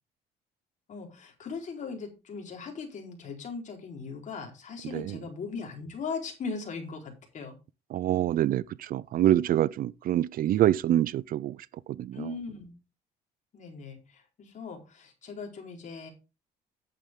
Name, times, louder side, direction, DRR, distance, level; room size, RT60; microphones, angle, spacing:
voice 1, 0.9-7.6 12.1-12.8 13.5-16.1, left 5 dB, 45° left, 4.2 m, -39 dB
voice 2, 7.9-11.6 11.9-12.3, right 12 dB, 60° right, 0.5 m, -26 dB
10.5 x 8.9 x 3.7 m
cardioid pair, 110°, 17 cm